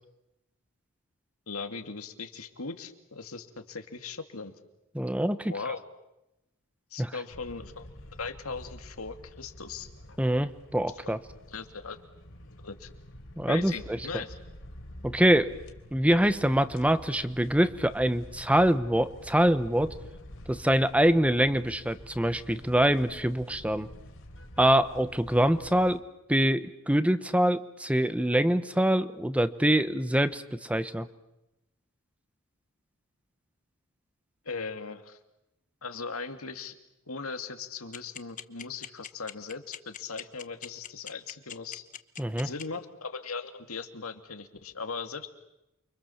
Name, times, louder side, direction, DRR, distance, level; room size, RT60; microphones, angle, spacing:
voice 1, 1.5-4.5 5.5-5.8 6.9-7.9 8.2-9.9 11.0-11.1 11.5-12.0 12.6-12.9 13.5-14.4 34.4-35.2 35.8-36.7 37.1-41.8 42.4-45.3, left 4 dB, 85° left, 7 dB, 2.5 m, -38 dB
voice 2, 4.9-5.5 7.0-7.1 10.2-11.2 13.4-13.7 15.0-15.5 15.9-19.9 20.5-23.9 24.6-26.0 26.3-31.1 42.2-42.5, right 1 dB, 5° right, 12 dB, 0.9 m, -24 dB
sound 1, 7.3-26.0, equal, 65° left, 3.5 m, -48 dB
sound 2, 37.9-42.6, left 9 dB, 35° left, 1.0 m, -40 dB
29.5 x 24.5 x 7.3 m, 0.91 s
head